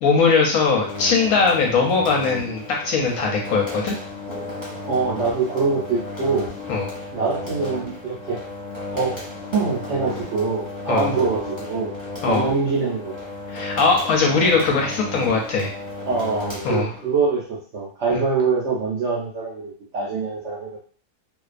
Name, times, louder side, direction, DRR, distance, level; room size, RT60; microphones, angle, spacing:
voice 1, 0.0-3.9 6.7-6.9 10.9-11.1 12.2-12.5 13.5-15.7 16.6-16.9 18.1-18.2, left 4 dB, 70° left, 0 dB, 0.9 m, -20 dB
sound 1, 0.7-17.2, left 2 dB, 20° left, 0.9 m, -34 dB
voice 2, 4.8-6.5 7.1-8.4 8.9-9.1 9.5-11.9 12.2-13.2 16.0-20.8, right 4 dB, 65° right, -5 dB, 0.7 m, -24 dB
2.5 x 2.2 x 2.4 m, 0.43 s
omnidirectional pair, 1.7 m